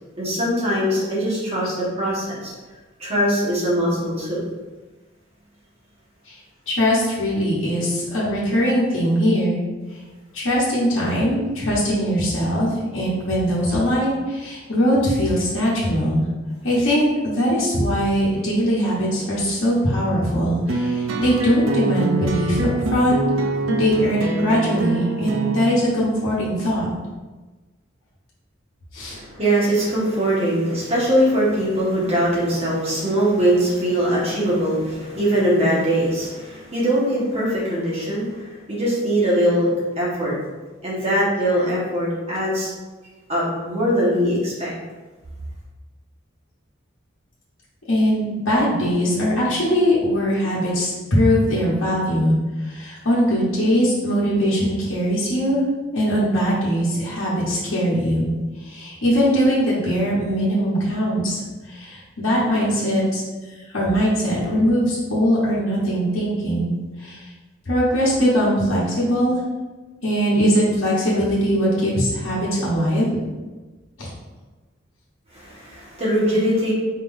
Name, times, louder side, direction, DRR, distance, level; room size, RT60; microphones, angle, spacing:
voice 1, 0.2-2.5 3.0-4.4 29.0-39.7 40.0-40.3 40.8-42.7 43.3-44.7 75.3-76.7, equal, 30° right, -7 dB, 1.4 m, -21 dB
voice 2, 6.7-9.6 10.3-12.7 12.9-16.2 16.6-23.2 23.7-26.9 28.9-29.2 47.9-52.3 52.6-55.6 55.9-58.3 58.6-63.2 63.5-66.7 67.0-67.3 67.7-69.4 70.0-73.1 74.0-74.1, equal, 80° left, -8 dB, 1.1 m, -21 dB
sound 1, 20.7-25.7, right 2 dB, 90° right, 0.5 m, -24 dB
4.4 x 3.8 x 2.6 m, 1.2 s
head